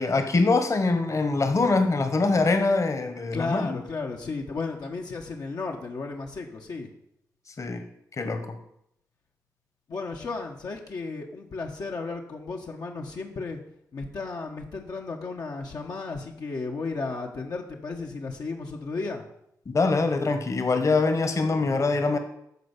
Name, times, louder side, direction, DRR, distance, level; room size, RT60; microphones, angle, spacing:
voice 1, 0.0-3.8 7.6-7.8 8.2-8.6 19.7-22.2, left 3 dB, 50° left, 7 dB, 1.6 m, -23 dB
voice 2, 3.3-6.9 9.9-13.6 13.9-19.2, left 3 dB, 70° left, 0 dB, 1.4 m, -34 dB
12.5 x 4.5 x 8.2 m, 0.76 s
cardioid pair, 70°, 7 cm